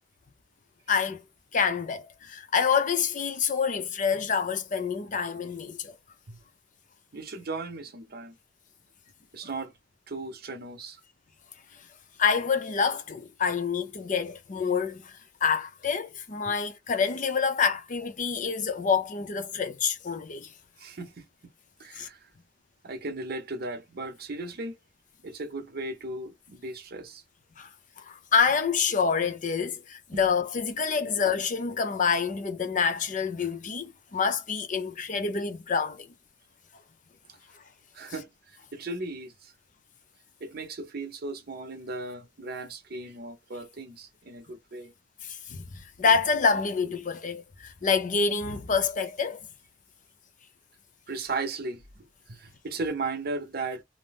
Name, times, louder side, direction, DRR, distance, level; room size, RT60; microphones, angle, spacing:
voice 1, 0.9-1.2 1.5-5.9 12.2-20.5 21.9-22.1 27.6-27.7 28.0-36.1 45.2-49.5, left 5 dB, 45° left, 0.5 m, -27 dB
voice 2, 7.1-8.4 9.3-9.7 10.1-11.0 20.8-21.2 21.8-22.3 22.8-24.8 25.2-27.2 30.1-30.2 30.9-31.1 37.3-37.4 37.9-38.3 38.7-39.5 40.4-44.9 51.1-53.8, right 3 dB, 55° right, 0.7 m, -36 dB
2.6 x 2.0 x 3.4 m
head